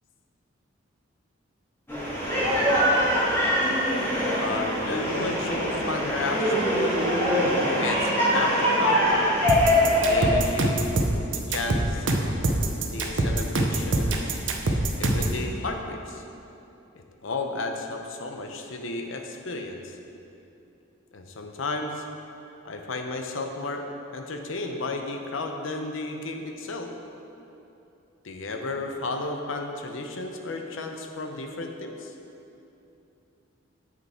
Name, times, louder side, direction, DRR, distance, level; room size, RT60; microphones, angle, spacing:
sound 1, 1.9-10.3, equal, 10° left, 2.0 m, -23 dB
voice 1, 4.4-6.8 7.7-9.2 10.0-10.9 11.3-12.1 12.9-14.3 15.0-16.2 17.2-20.0 21.1-22.0 22.6-23.9 24.1-26.9 28.2-32.1, left 3 dB, 80° left, 4 dB, 0.7 m, -33 dB
sound 2, 9.5-15.4, right 2 dB, 70° right, 0.8 m, -24 dB
7.9 x 6.7 x 4.3 m, 2.8 s
head